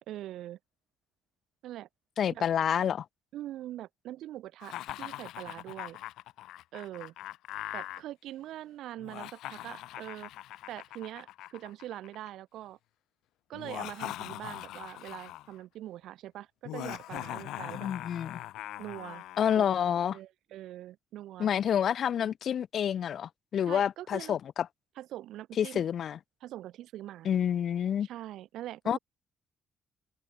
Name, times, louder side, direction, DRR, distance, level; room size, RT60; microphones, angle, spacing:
voice 1, 0.1-0.6 1.6-1.9 2.3-2.4 3.3-6.0 6.7-7.1 7.7-10.3 10.7-12.8 13.5-17.9 18.8-19.2 19.5-19.9 20.1-21.5 23.7-24.4 25.0-25.8 26.4-27.3 28.0-29.0, right 13 dB, 85° right, 6.2 m, -43 dB
voice 2, 2.2-3.0 17.7-18.4 19.4-20.2 21.4-24.7 25.6-26.2 27.2-28.1 28.9-29.0, left 9 dB, 60° left, 1.0 m, -28 dB
Laughter, 4.6-8.0 9.0-12.3 13.5-15.5 16.6-19.6, left 15 dB, 90° left, 0.6 m, -41 dB
cardioid pair, 90°, 0 cm